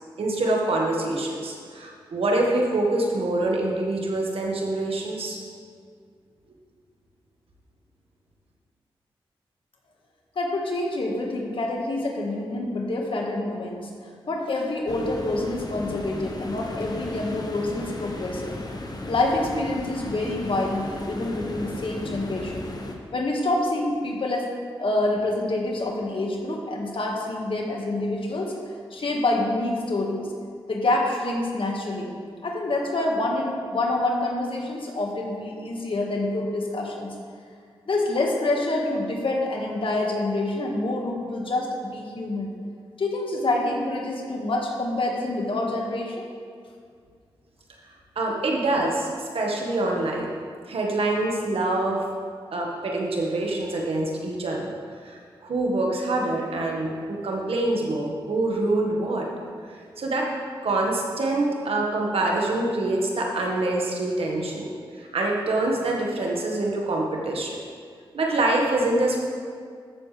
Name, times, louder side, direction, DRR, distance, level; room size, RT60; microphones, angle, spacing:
voice 1, 0.2-5.4 48.1-50.3 50.7-52.0 52.5-54.7 55.0-59.3 59.7-60.3 60.6-64.7 65.0-67.6 68.1-69.2, right 2 dB, 70° right, -1 dB, 1.7 m, -25 dB
voice 2, 10.4-18.5 19.1-22.7 23.1-24.5 24.8-28.6 28.9-30.3 30.7-32.1 32.4-37.1 37.9-42.5 43.0-46.4, left 2 dB, 60° left, 0 dB, 1.8 m, -27 dB
sound 1, 14.9-23.0, left 1 dB, 40° left, 1.4 m, -35 dB
14.0 x 7.2 x 3.4 m, 2.1 s
cardioid pair, 45°, 10 cm